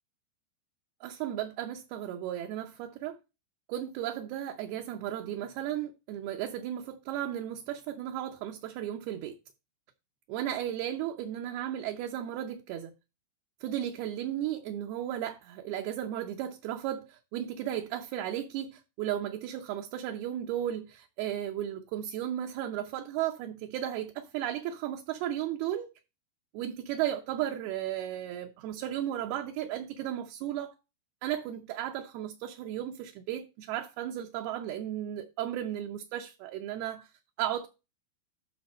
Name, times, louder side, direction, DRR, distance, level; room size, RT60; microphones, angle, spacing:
voice 1, 1.0-3.2 3.7-9.4 10.3-12.9 13.6-25.9 26.5-30.7 31.2-37.1 37.4-37.7, right 11 dB, 75° right, 2.6 m, -35 dB
12.5 x 4.2 x 4.2 m
omnidirectional pair, 4.8 m